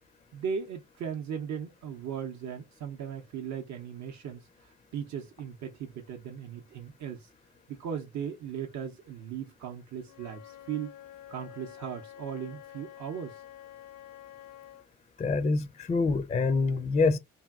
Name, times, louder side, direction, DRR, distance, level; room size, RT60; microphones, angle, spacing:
voice 1, 0.3-7.3 7.7-10.9 11.3-13.4, right 7 dB, 55° right, 0.6 m, -38 dB
Wind instrument woodwind instrument, 10.0-14.9, left 11 dB, 75° left, 0.5 m, -49 dB
voice 2, 15.2-17.2, left 4 dB, 20° left, 0.4 m, -26 dB
2.7 x 2.6 x 2.3 m
hypercardioid pair, 50°, 33 cm